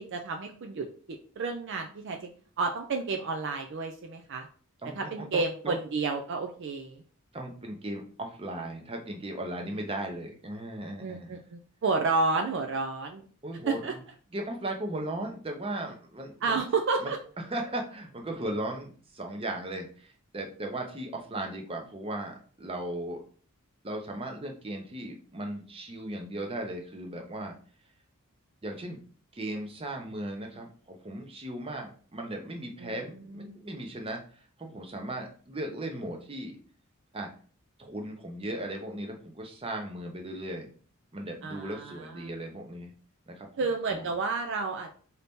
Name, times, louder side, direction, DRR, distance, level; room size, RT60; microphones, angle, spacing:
voice 1, 0.0-2.2 2.6-4.5 4.9-7.0 11.0-13.2 13.7-13.9 16.4-17.2 32.8-33.0 33.3-33.5 41.4-42.1 43.6-44.9, right 4 dB, 55° right, 4 dB, 0.4 m, -31 dB
voice 2, 4.8-5.7 7.3-11.4 13.4-14.0 14.3-16.6 17.0-23.2 23.8-27.5 28.6-29.0 29.3-36.6 37.1-37.3 37.8-40.7 41.1-42.9 43.3-43.5 43.9-44.1, right 1 dB, 25° right, 2 dB, 0.7 m, -37 dB
4.0 x 2.8 x 3.5 m, 0.42 s
head